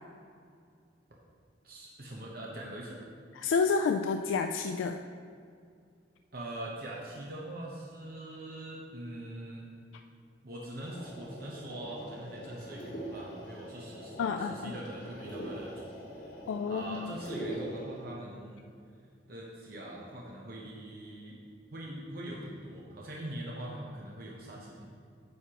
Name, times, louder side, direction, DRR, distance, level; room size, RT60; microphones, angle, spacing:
voice 1, 1.6-3.0 6.3-9.7 10.4-16.4 16.7-18.7 19.3-21.4 21.7-24.9, right 1 dB, 50° right, -3 dB, 0.9 m, -43 dB
voice 2, 3.4-5.0 14.2-14.8 16.5-17.1, left 5 dB, 85° left, 6 dB, 0.3 m, -29 dB
sound 1, 10.8-18.1, equal, 65° left, 1.4 m, -43 dB
9.5 x 6.6 x 2.9 m, 2.3 s
head